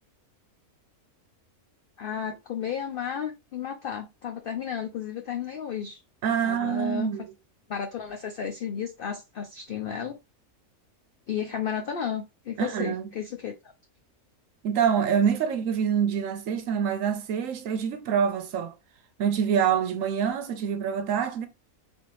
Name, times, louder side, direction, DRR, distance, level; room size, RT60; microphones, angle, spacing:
voice 1, 2.0-6.0 6.4-7.1 7.7-10.2 11.3-13.7, left 8 dB, 75° left, 0.5 m, -33 dB
voice 2, 6.2-7.3 12.6-13.1 14.6-18.7 19.2-21.5, right 8 dB, 70° right, 1.0 m, -26 dB
4.3 x 2.6 x 3.0 m
omnidirectional pair, 1.5 m